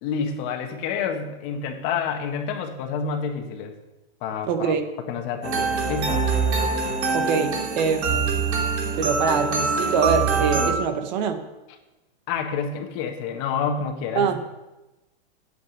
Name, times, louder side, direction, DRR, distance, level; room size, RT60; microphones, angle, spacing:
voice 1, 0.0-3.7 4.2-4.7 5.1-6.3 12.3-14.4, left 6 dB, 35° left, 4 dB, 1.5 m, -28 dB
voice 2, 4.4-4.8 7.1-8.3 9.0-11.4 14.1-14.4, right 6 dB, 45° right, 8 dB, 1.3 m, -24 dB
sound 1, 5.4-10.7, right 4 dB, 90° right, 3.1 m, -24 dB
9.4 x 8.1 x 8.2 m, 1.0 s
supercardioid pair, 160°, 32 cm